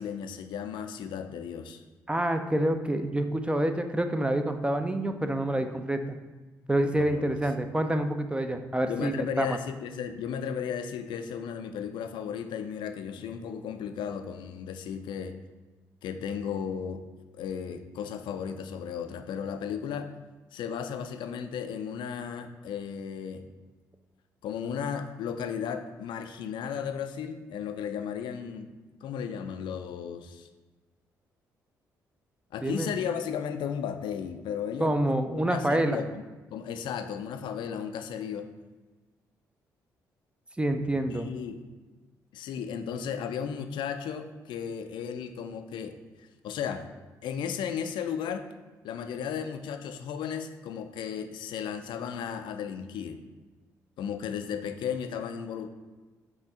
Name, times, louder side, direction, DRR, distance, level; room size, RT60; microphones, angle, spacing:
voice 1, 0.0-1.8 6.9-7.2 8.9-15.4 16.0-17.0 17.3-20.1 20.5-23.4 24.4-28.7 29.0-30.5 32.5-35.0 35.3-36.2 36.5-38.5 41.1-41.6 42.3-45.9 46.4-46.9 47.2-48.5 48.8-53.2 54.0-55.7, left 7 dB, 60° left, 7 dB, 0.4 m, -35 dB
voice 2, 2.1-6.2 6.7-9.6 32.6-32.9 34.8-36.0 40.6-41.3, right 1 dB, 10° right, 7 dB, 0.4 m, -27 dB
5.6 x 2.4 x 3.7 m, 1.2 s
figure-of-eight pair, 40°, 9 cm